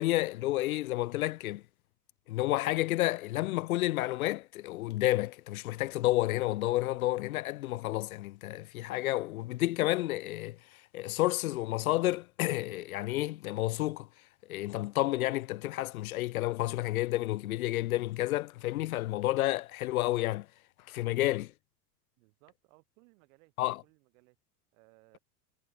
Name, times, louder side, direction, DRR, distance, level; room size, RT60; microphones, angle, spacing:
voice 1, 0.0-1.6 2.3-14.1 14.5-20.5 20.9-21.5 23.6-23.8, left 16 dB, 60° left, 0.9 m, -30 dB
voice 2, 22.2-23.5 23.8-24.4 24.7-25.2, right 26 dB, 55° right, 7.5 m, -63 dB
figure-of-eight pair, 75°, 49 cm